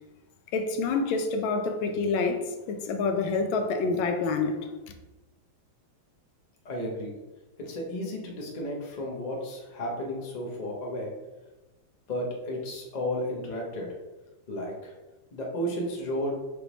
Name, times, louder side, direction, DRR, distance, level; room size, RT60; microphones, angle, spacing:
voice 1, 0.5-4.6, left 4 dB, 80° left, 6 dB, 1.3 m, -27 dB
voice 2, 6.6-7.1 7.6-11.1 12.1-13.9 14.5-14.9 15.3-16.3, equal, 55° left, -1 dB, 0.5 m, -33 dB
4.8 x 3.4 x 3.0 m, 1.1 s
omnidirectional pair, 2.2 m